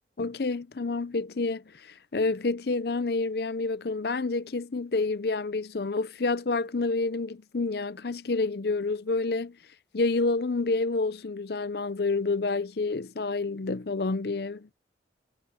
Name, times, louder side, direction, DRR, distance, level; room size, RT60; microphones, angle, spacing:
voice 1, 0.2-9.6 9.9-14.7, left 3 dB, 55° left, 0.6 m, -28 dB
head